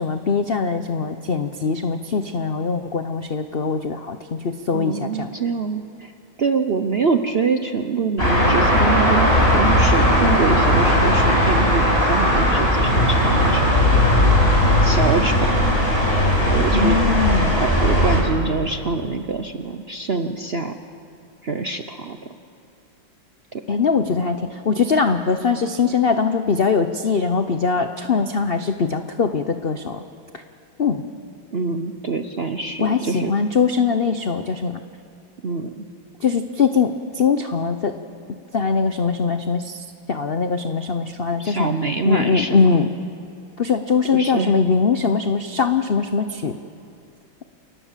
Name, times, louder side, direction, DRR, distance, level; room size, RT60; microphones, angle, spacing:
voice 1, 0.0-5.3 16.7-17.6 23.7-30.0 30.8-31.0 32.8-34.8 36.2-38.0 38.5-41.7 42.0-42.9 43.6-46.6, left 5 dB, 65° left, 8 dB, 0.5 m, -21 dB
voice 2, 4.7-6.1 6.4-13.6 14.8-15.6 16.5-17.0 17.5-20.7 21.4-22.2 23.5-23.6 31.5-33.3 35.4-35.8 41.4-42.8 44.1-44.5, right 4 dB, 50° right, 7 dB, 0.7 m, -25 dB
sound 1, 8.2-18.2, equal, 30° left, 5.4 m, -17 dB
27.5 x 19.5 x 7.4 m, 2.5 s
omnidirectional pair, 2.1 m